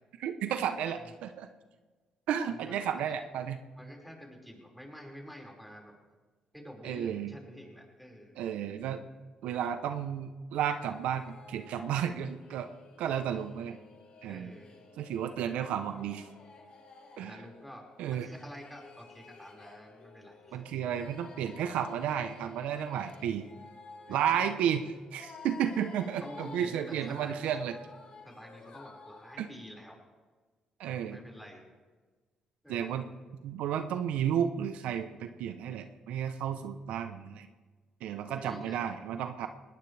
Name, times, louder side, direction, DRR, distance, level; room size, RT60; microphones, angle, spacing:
voice 1, 0.2-1.5 2.3-3.6 6.8-7.3 8.4-9.0 9.4-12.7 13.0-13.8 14.2-14.5 15.0-16.3 17.2-17.4 18.0-18.3 20.5-23.5 24.1-27.8 29.4-29.5 30.8-31.2 32.7-33.1 33.4-37.5 38.0-39.5, right 9 dB, 80° right, 9 dB, 0.8 m, -32 dB
voice 2, 2.5-3.1 3.8-5.9 6.5-8.4 14.2-14.7 17.2-17.8 18.1-20.6 24.1-24.4 26.2-27.5 28.2-30.0 31.1-31.6 32.6-33.1 38.3-38.8, equal, ahead, 0 dB, 5.3 m, -48 dB
sound 1, 10.6-29.4, left 4 dB, 60° left, 4.2 m, -53 dB
20.0 x 18.0 x 3.4 m, 1.3 s
supercardioid pair, 70°, 2 cm